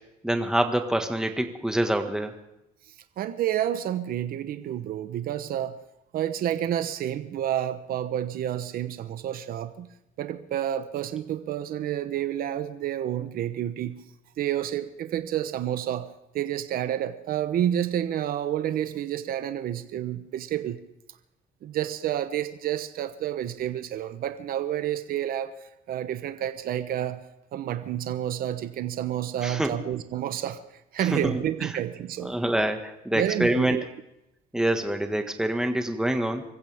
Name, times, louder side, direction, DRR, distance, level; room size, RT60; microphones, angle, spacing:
voice 1, 0.2-2.3 29.4-29.7 31.0-31.4 32.2-33.8 34.5-36.4, right 1 dB, 5° right, 5 dB, 1.7 m, -26 dB
voice 2, 3.2-5.8 6.1-9.9 10.2-14.0 14.4-16.1 16.3-20.8 21.6-27.2 27.5-30.6 30.9-32.3 33.1-33.8, right 11 dB, 60° right, 10 dB, 0.9 m, -29 dB
25.0 x 15.0 x 3.5 m, 0.87 s
cardioid pair, 110°, 17 cm